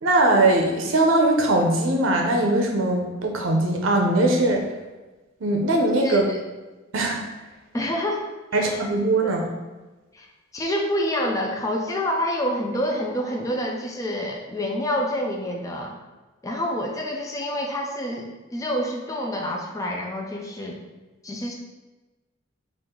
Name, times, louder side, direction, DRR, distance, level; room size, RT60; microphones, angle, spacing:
voice 1, 0.0-4.6 5.4-6.2 6.9-7.2 8.5-9.4, right 2 dB, 70° right, 2 dB, 0.6 m, -20 dB
voice 2, 6.0-6.4 7.7-8.8 9.2-9.3 10.1-10.3 10.5-16.0 16.4-20.8 21.2-21.5, equal, 15° left, 0 dB, 0.4 m, -27 dB
4.7 x 2.5 x 3.6 m, 1.2 s
head